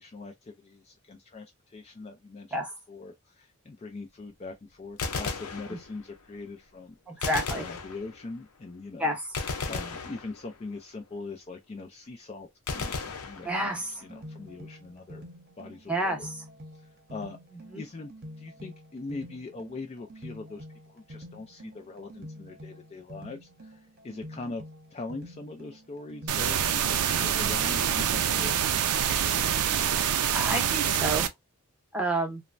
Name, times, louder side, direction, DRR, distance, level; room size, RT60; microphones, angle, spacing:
voice 1, 0.0-2.5 2.9-9.1 9.7-15.2 15.6-16.3 16.7-17.4 17.8-18.1 18.4-24.6 24.9-28.8, left 3 dB, 30° left, 0.3 m, -42 dB
Gunshot gunfire, 4.9-6.2 7.2-8.4 9.3-10.8 12.7-14.0, left 4 dB, 80° left, 0.6 m, -35 dB
voice 2, 7.1-7.6 9.0-9.2 13.4-13.9 15.9-16.3 17.7-17.8 30.1-31.3 31.9-32.4, right 1 dB, 5° right, 0.7 m, -29 dB
sound 1, 13.7-28.6, equal, 45° right, 0.8 m, -47 dB
sound 2, 26.3-31.3, right 9 dB, 90° right, 0.4 m, -26 dB
3.0 x 2.1 x 2.4 m
head